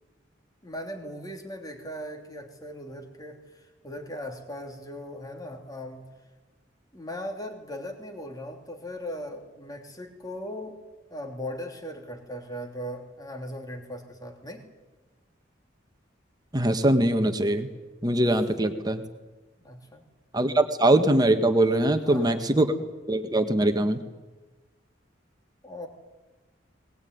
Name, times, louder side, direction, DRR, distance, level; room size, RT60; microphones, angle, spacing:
voice 1, 0.6-6.0 6.9-10.8 11.1-14.6 19.6-20.0 21.9-22.5 25.6-25.9, equal, 20° left, 4 dB, 3.1 m, -38 dB
voice 2, 16.5-17.7 18.0-19.0 20.3-22.7 23.1-24.0, right 1 dB, 20° right, 7 dB, 1.6 m, -22 dB
21.0 x 20.0 x 9.6 m, 1.2 s
head